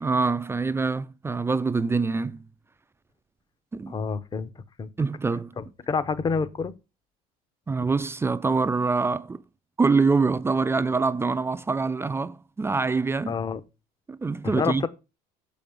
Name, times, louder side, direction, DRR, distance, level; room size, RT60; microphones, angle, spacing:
voice 1, 0.0-2.5 3.7-3.9 5.0-5.5 7.7-9.4 9.8-13.4 14.1-14.9, right 4 dB, 15° right, 0.4 m, -25 dB
voice 2, 3.9-4.5 4.8-4.9 5.6-6.7 13.3-13.6 14.5-14.9, left 5 dB, 25° left, 0.8 m, -28 dB
6.9 x 5.1 x 7.0 m
cardioid pair, 110°, 17 cm